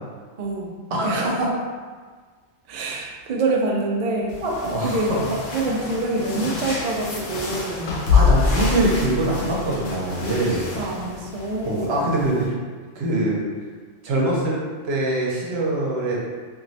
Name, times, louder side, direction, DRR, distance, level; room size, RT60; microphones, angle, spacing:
voice 1, 0.4-0.7 1.0-1.3 2.7-4.4 4.8-8.0 10.8-12.0, right 2 dB, 85° right, -1 dB, 0.3 m, -26 dB
voice 2, 0.9-1.5 4.4-5.2 8.1-10.7 11.7-12.5 12.9-13.4 14.0-14.6 14.8-16.2, right 1 dB, 65° right, -3 dB, 0.9 m, -23 dB
sound 1, 4.3-12.5, left 4 dB, 90° left, 1.0 m, -26 dB
3.0 x 2.6 x 2.6 m, 1.5 s
omnidirectional pair, 1.3 m